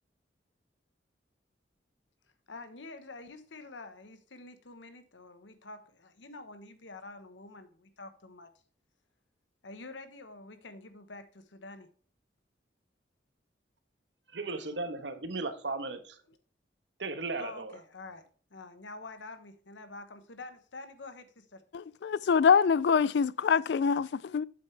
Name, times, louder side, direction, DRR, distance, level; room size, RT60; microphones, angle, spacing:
voice 1, 2.5-8.5 9.6-11.9 16.3-16.4 17.4-21.6, left 3 dB, 90° left, 1.2 m, -47 dB
voice 2, 14.3-16.2 17.0-17.7, right 3 dB, 75° right, 1.2 m, -36 dB
voice 3, 21.7-24.4, left 6 dB, 65° left, 0.3 m, -25 dB
8.4 x 7.7 x 3.4 m
head